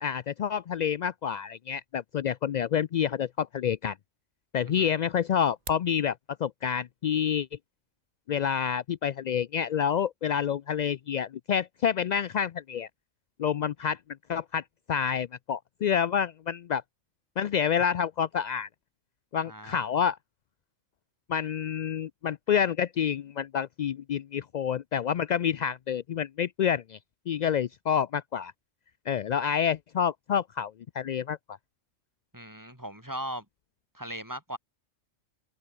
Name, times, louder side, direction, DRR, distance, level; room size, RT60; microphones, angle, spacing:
voice 1, 0.0-4.0 4.5-7.5 8.3-12.9 13.4-14.0 14.3-14.6 14.9-16.8 17.4-18.7 19.3-20.2 21.3-27.0 27.3-28.5 29.1-31.6, left 8 dB, 70° left, 0.4 m, -28 dB
sound 1, 5.4-6.0, right 4 dB, 35° right, 1.3 m, -44 dB
voice 2, 19.5-19.8 32.3-33.5 33.9-34.6, equal, 15° right, 5.4 m, -38 dB
omnidirectional pair, 1.3 m